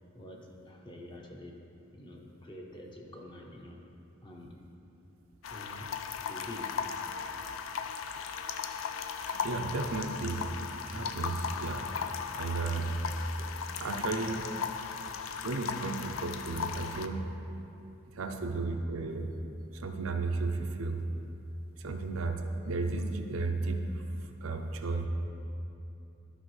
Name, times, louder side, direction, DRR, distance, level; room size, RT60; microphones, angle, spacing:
voice 1, 0.1-1.6 1.9-3.8 4.2-4.5 5.5-5.9 6.2-6.7, left 1 dB, 25° left, 0 dB, 0.7 m, -47 dB
sound 1, 3.0-3.5 3.8-3.9 4.3-4.5 5.0-5.1 5.5-7.7 8.0-8.7 9.2-11.0 11.7-12.3 12.8-13.0 13.4-13.7 14.2-14.3 14.6-15.1 15.4-15.5 16.1-16.7 18.0-18.9, right 1 dB, 45° right, 0.6 m, -58 dB
sound 2, 5.4-17.1, left 6 dB, 80° left, 0.4 m, -37 dB
voice 2, 9.3-10.5 10.9-12.9 13.8-14.6 15.4-17.3 18.1-19.3 19.7-21.0 21.8-23.9 24.4-25.1, right 3 dB, 90° right, 4 dB, 0.6 m, -34 dB
12.0 x 5.3 x 3.2 m, 2.8 s
head